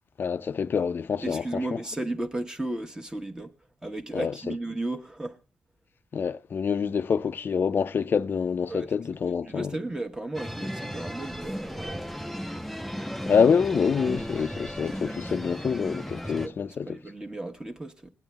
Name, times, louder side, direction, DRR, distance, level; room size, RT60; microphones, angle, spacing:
voice 1, 0.2-1.8 4.1-4.6 6.1-9.7 13.3-17.0, left 6 dB, 50° left, 0.5 m, -26 dB
voice 2, 1.2-3.5 3.8-5.4 8.7-8.9 9.5-12.0 16.0-18.1, right 2 dB, 15° right, 1.1 m, -34 dB
sound 1, 10.3-16.5, equal, ahead, 0.6 m, -35 dB
21.0 x 8.9 x 2.3 m
cardioid pair, 85°, 4 cm